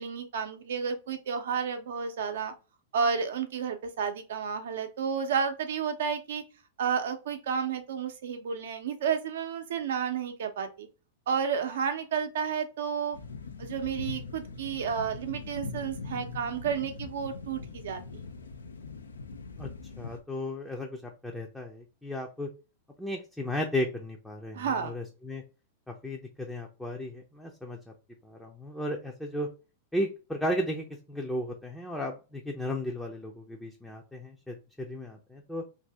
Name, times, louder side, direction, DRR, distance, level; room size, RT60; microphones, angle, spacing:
voice 1, 0.0-2.5 2.9-6.4 6.8-10.9 11.3-13.2 13.6-18.3 24.5-24.9, right 6 dB, 70° right, 7 dB, 0.6 m, -31 dB
sound 1, 13.1-20.2, left 4 dB, 85° left, 0.5 m, -41 dB
voice 2, 20.0-22.5 23.0-25.4 25.9-27.8 28.2-29.5 29.9-35.6, left 1 dB, 5° left, 0 dB, 0.5 m, -35 dB
2.6 x 2.6 x 3.3 m, 0.33 s
hypercardioid pair, 100°, 0 cm